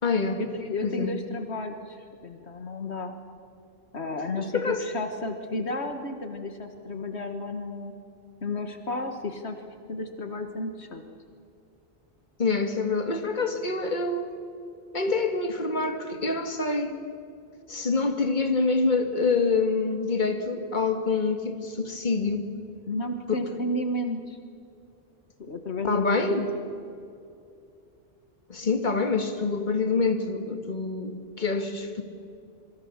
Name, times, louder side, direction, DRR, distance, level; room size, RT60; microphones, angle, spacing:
voice 1, 0.0-0.4 0.8-1.1 4.4-4.8 12.4-14.3 14.9-17.0 17.7-22.5 23.3-23.4 25.8-26.5 28.5-32.0, left 4 dB, 40° left, 6 dB, 2.0 m, -26 dB
voice 2, 0.5-3.1 3.9-7.9 8.4-9.6 9.9-11.0 22.9-24.4 25.4-26.1, left 2 dB, 70° left, 6 dB, 1.7 m, -32 dB
25.5 x 24.5 x 7.2 m, 2.5 s
omnidirectional pair, 1.2 m